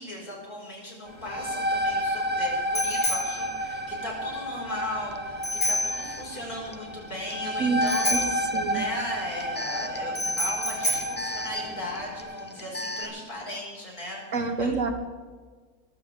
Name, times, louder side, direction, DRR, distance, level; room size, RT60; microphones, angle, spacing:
voice 1, 0.0-14.8, left 1 dB, 70° left, -3 dB, 6.2 m, -37 dB
Bicycle bell, 1.1-12.2, left 1 dB, 50° left, 6.8 m, -32 dB
sound 1, 1.1-12.6, equal, 5° right, 1.4 m, -31 dB
Alarm, 5.1-5.2 5.9-13.3, left 1 dB, 15° left, 0.4 m, -39 dB
voice 2, 8.5-8.8 14.3-14.9, right 4 dB, 55° right, 6 dB, 1.6 m, -26 dB
23.0 x 15.0 x 3.7 m, 1.5 s
omnidirectional pair, 1.6 m